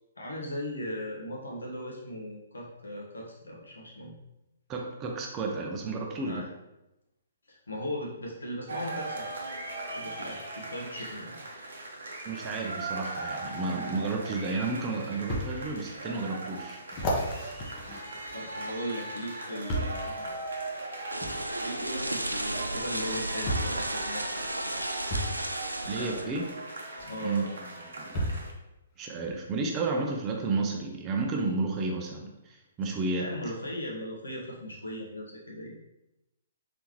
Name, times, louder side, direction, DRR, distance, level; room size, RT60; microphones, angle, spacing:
voice 1, 0.2-4.1 6.2-6.4 7.5-9.3 9.9-11.3 18.3-20.3 21.6-25.0 25.8-26.3 27.0-27.5 33.2-35.7, equal, 75° left, -3 dB, 1.2 m, -38 dB
voice 2, 4.7-6.5 12.3-16.8 25.9-26.5 27.2-27.5 27.9-28.2 29.0-33.3, right 3 dB, 20° right, 1 dB, 0.6 m, -32 dB
sound 1, 8.7-28.5, right 2 dB, 65° right, 0.8 m, -39 dB
sound 2, 15.3-15.5 16.1-16.2 16.9-18.8 19.7-20.0 21.2-21.4 22.6-22.7 23.5-23.8 25.1-25.3 27.0-27.1 28.1-28.5 29.3-29.4, equal, 30° left, 0.9 m, -32 dB
sound 3, 21.1-26.2, right 1 dB, 85° right, 0.4 m, -34 dB
4.0 x 3.5 x 3.1 m, 0.93 s
figure-of-eight pair, 125°, 0 cm